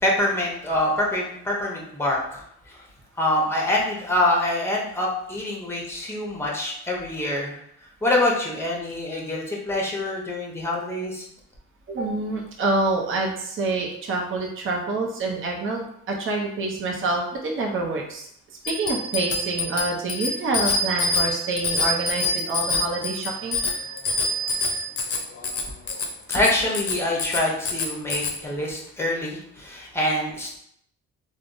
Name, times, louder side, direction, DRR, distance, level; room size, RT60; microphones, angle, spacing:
voice 1, 0.0-2.4 3.2-7.6 8.0-11.2 26.3-30.6, left 1 dB, 10° left, -3 dB, 0.9 m, -25 dB
voice 2, 11.9-18.3 18.7-23.6, right 3 dB, 45° right, 0 dB, 0.6 m, -27 dB
Bicycle bell, 18.6-28.4, left 2 dB, 50° left, 0.6 m, -26 dB
3.3 x 2.0 x 2.6 m, 0.72 s
cardioid pair, 90°, 30 cm